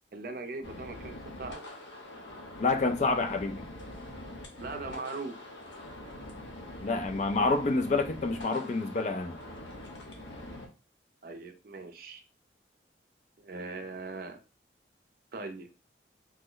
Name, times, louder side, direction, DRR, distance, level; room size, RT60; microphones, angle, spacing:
voice 1, 0.1-1.6 4.5-5.4 11.2-12.2 13.4-14.4 15.3-15.7, right 3 dB, 50° right, 0.5 m, -40 dB
sound 1, 0.6-10.7, left 1 dB, 80° left, 0.8 m, -44 dB
voice 2, 2.6-3.6 6.8-9.4, left 3 dB, 40° left, 0.3 m, -28 dB
3.0 x 2.1 x 3.7 m
head